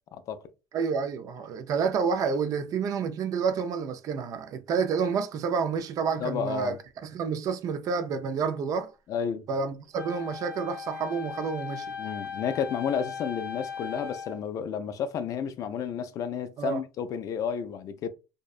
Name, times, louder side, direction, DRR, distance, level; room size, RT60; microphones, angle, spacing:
voice 1, 0.7-6.8 7.0-8.9 9.5-11.9 16.6-16.8, right 6 dB, 45° right, 0.4 m, -29 dB
voice 2, 6.2-6.8 9.1-9.4 12.0-18.1, left 7 dB, 45° left, 0.3 m, -31 dB
Wind instrument woodwind instrument, 9.9-14.4, left 6 dB, 10° right, 0.8 m, -38 dB
2.6 x 2.1 x 2.3 m
cardioid pair, 135°, 8 cm